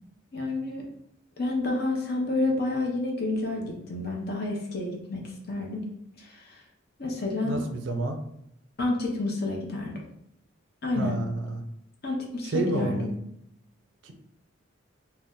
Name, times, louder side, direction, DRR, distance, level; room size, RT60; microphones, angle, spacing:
voice 1, 0.3-0.8 1.4-5.8 6.2-6.3 7.0-7.6 8.8-9.9 10.8-11.2 12.0-13.1, left 2 dB, 50° left, -1 dB, 0.6 m, -29 dB
voice 2, 7.4-8.2 11.0-11.6 12.4-13.1 14.0-14.1, right 2 dB, 70° right, 5 dB, 0.4 m, -29 dB
2.6 x 2.1 x 3.6 m, 0.77 s
head